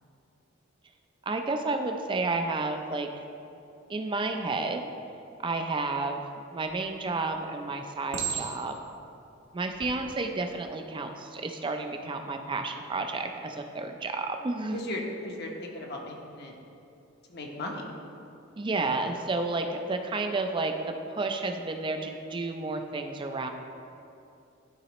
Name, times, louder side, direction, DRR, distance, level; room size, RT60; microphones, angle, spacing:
voice 1, 1.3-3.1 3.9-4.8 5.4-6.2 6.5-8.7 9.5-14.8 18.6-23.5, right 3 dB, 25° right, 5 dB, 0.4 m, -31 dB
Chink clink, 6.6-7.1 8.1-8.9 9.6-9.9, right 7 dB, 60° right, 1.0 m, -34 dB
voice 2, 14.7-16.6 17.3-17.8, left 1 dB, 55° left, 0 dB, 0.8 m, -36 dB
12.0 x 4.0 x 3.0 m, 2.7 s
head